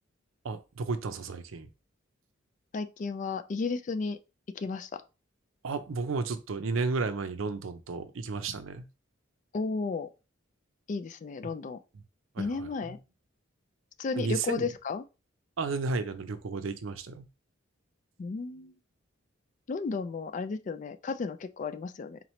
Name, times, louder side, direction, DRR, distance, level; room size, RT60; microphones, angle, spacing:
voice 1, 0.4-1.7 5.6-8.8 12.3-13.0 14.2-14.7 15.6-17.3, right 4 dB, 90° right, 0.5 m, -33 dB
voice 2, 2.7-4.2 4.5-5.0 9.5-10.1 10.9-11.8 12.4-13.0 14.0-15.0 18.2-18.7 19.7-22.2, left 4 dB, 40° left, 0.3 m, -33 dB
3.9 x 3.0 x 3.1 m
head